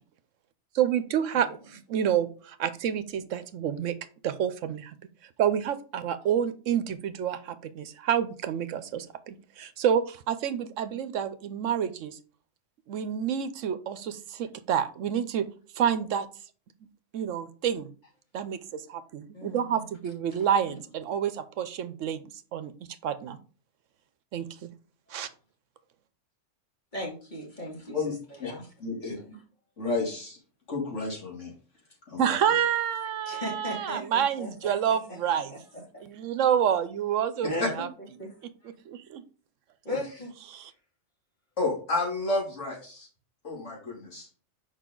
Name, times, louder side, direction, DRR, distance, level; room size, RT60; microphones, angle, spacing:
voice 1, 0.7-3.9 4.2-4.9 5.4-12.2 12.9-15.5 15.7-16.3 17.1-17.9 18.3-22.2 22.5-22.7 23.0-23.4 24.3-24.7 25.1-25.3 32.2-35.5 36.0-37.9 38.9-39.2 40.5-40.7, right 9 dB, 75° right, 12 dB, 1.0 m, -28 dB
voice 2, 19.3-19.8 20.7-20.8 26.9-29.4 33.3-35.2 35.5-36.0 37.4-38.3 38.6-38.7 39.8-40.3, left 1 dB, 35° left, -3 dB, 2.4 m, -38 dB
voice 3, 28.8-29.2 29.8-30.4 30.7-31.5 32.1-32.4 37.6-37.7 41.6-43.1 43.4-44.3, left 3 dB, 65° left, -3 dB, 3.1 m, -30 dB
6.6 x 5.1 x 3.8 m, 0.39 s
omnidirectional pair, 1.3 m